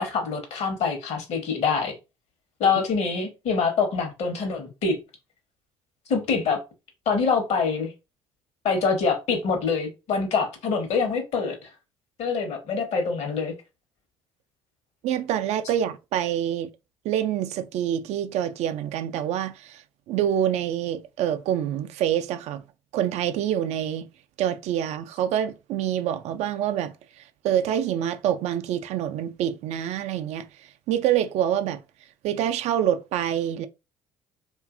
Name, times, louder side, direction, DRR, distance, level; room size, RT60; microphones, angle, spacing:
voice 1, 0.0-1.9 2.6-5.0 6.1-6.6 7.1-7.9 8.6-11.7 12.2-13.5, left 5 dB, 60° left, 1.0 m, -25 dB
voice 2, 15.0-16.7 17.0-19.8 20.1-22.6 22.9-24.1 24.4-30.5 30.9-31.8 32.2-33.7, right 10 dB, 60° right, 0.4 m, -26 dB
2.6 x 2.5 x 2.4 m
hypercardioid pair, 60°, 13 cm